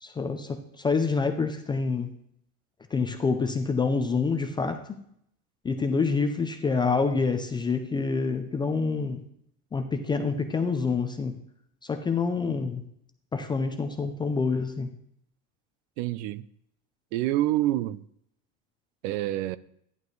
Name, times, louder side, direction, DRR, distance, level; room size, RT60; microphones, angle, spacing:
voice 1, 0.0-2.2 2.9-5.0 5.6-9.2 9.7-11.4 11.8-12.8 13.3-14.9, left 4 dB, 10° left, 0.3 m, -27 dB
voice 2, 16.0-16.4 17.1-18.0 19.0-19.6, right 14 dB, 70° right, 0.6 m, -27 dB
12.0 x 11.0 x 3.2 m
cardioid pair, 155°, 41 cm